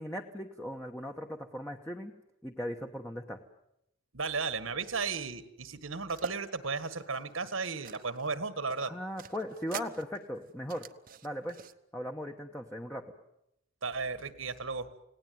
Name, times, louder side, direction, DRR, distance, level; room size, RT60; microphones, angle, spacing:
voice 1, 0.0-2.1 2.4-3.4 8.8-10.9 11.2-11.6 11.9-13.1, equal, 10° left, 2 dB, 1.1 m, -38 dB
voice 2, 4.1-8.9 13.8-14.9, right 4 dB, 75° right, 12 dB, 1.7 m, -35 dB
sound 1, 6.1-6.4 6.8-8.4 8.7-11.7, right 5 dB, 45° right, 0.9 m, -44 dB
29.0 x 18.0 x 9.4 m, 0.84 s
head